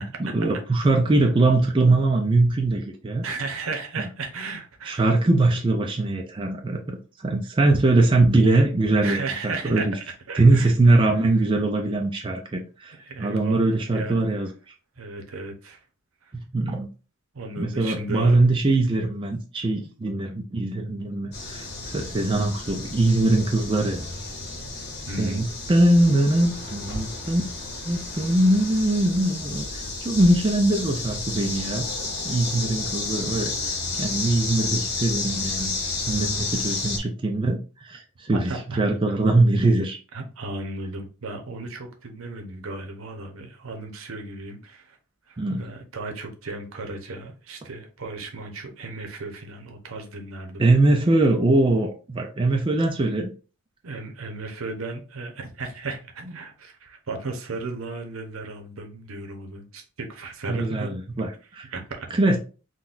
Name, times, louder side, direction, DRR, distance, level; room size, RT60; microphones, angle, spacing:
voice 1, 0.2-3.3 4.8-9.9 10.4-14.5 16.3-16.9 17.6-24.0 25.2-27.4 27.8-31.9 32.2-35.7 36.1-40.0 45.4-45.7 50.6-53.3 60.5-61.7 62.1-62.4, right 2 dB, 25° right, 0.4 m, -22 dB
voice 2, 3.2-5.1 9.0-9.9 10.3-10.7 13.0-14.2 15.0-15.8 16.2-16.3 17.3-18.4 25.1-25.5 37.4-37.5 38.3-38.8 40.1-45.0 45.3-50.7 53.8-60.9 61.7-62.1, right 3 dB, 75° right, 0.7 m, -35 dB
sound 1, 21.3-37.0, left 3 dB, 50° left, 0.9 m, -32 dB
3.8 x 2.2 x 2.4 m
head